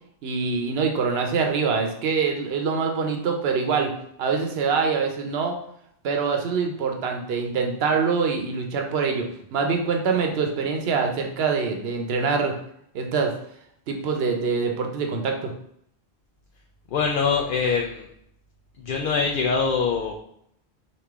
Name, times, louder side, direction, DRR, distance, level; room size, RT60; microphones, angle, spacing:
voice 1, 0.2-3.9 4.2-5.6 6.0-12.5 12.9-13.3 13.9-15.5, right 5 dB, 70° right, 3 dB, 0.9 m, -24 dB
voice 2, 16.9-18.1 18.8-20.1, left 5 dB, 60° left, 1 dB, 0.7 m, -23 dB
4.9 x 2.8 x 3.5 m, 0.70 s
omnidirectional pair, 1.1 m